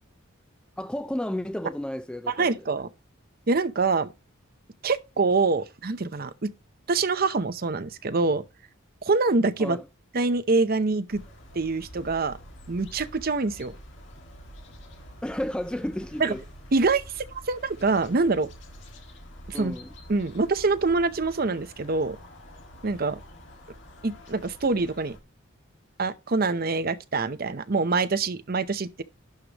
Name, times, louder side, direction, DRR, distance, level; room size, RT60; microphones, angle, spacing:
voice 1, 0.8-2.7 9.6-9.9 15.2-16.4 19.5-19.9, left 1 dB, 5° left, 0.3 m, -32 dB
voice 2, 2.4-2.9 3.5-4.1 4.8-6.5 6.9-8.4 9.0-9.8 10.1-11.2 11.5-12.4 12.7-13.7 16.2-16.3 16.7-18.5 19.5-19.8 20.1-22.2 22.8-23.2 24.0-25.2 26.0-29.0, right 3 dB, 45° right, 0.7 m, -25 dB
sound 1, 11.1-25.2, equal, 60° left, 2.0 m, -47 dB
11.5 x 4.9 x 2.9 m
head